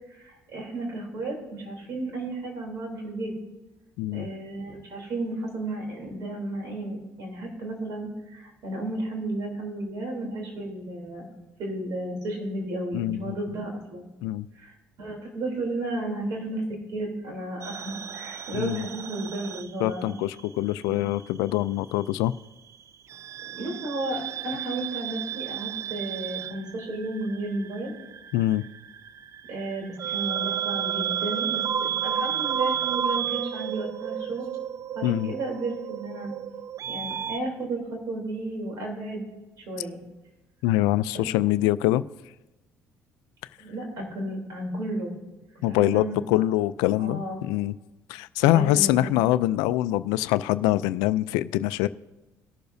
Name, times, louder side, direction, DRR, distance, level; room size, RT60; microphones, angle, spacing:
voice 1, 0.1-3.3 4.1-11.3 11.6-14.1 14.5-16.6 16.9-20.2 20.9-21.0 23.4-27.9 29.5-34.5 34.9-36.3 36.9-39.2 39.7-40.0 41.1-41.2 43.6-45.1 45.7-46.2 47.0-47.4 48.5-49.1, right 2 dB, 65° right, 1 dB, 3.3 m, -33 dB
voice 2, 12.9-13.4 14.2-14.5 18.5-18.8 19.8-22.3 28.3-28.6 35.0-35.3 40.6-42.0 45.6-47.7 48.1-51.9, left 15 dB, 90° left, 15 dB, 0.4 m, -24 dB
sound 1, 17.6-20.5 20.7-21.9 23.1-37.4, right 9 dB, 50° right, 0.4 m, -32 dB
19.0 x 6.8 x 2.7 m, 1.1 s
supercardioid pair, 80°, 6 cm